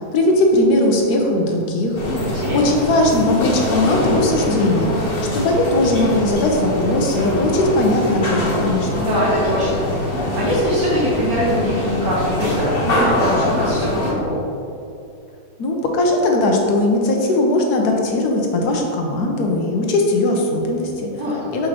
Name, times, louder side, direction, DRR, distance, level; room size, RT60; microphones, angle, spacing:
voice 1, 0.1-2.0 2.5-9.0 15.6-21.1 21.5-21.7, left 1 dB, 80° left, 1 dB, 1.3 m, -19 dB
sound 1, 1.9-14.1, left 1 dB, 40° left, 1.3 m, -23 dB
voice 2, 2.1-2.6 8.9-14.5 21.2-21.5, equal, 65° right, -8 dB, 1.6 m, -23 dB
6.7 x 5.4 x 2.9 m, 2.7 s
omnidirectional pair, 1.7 m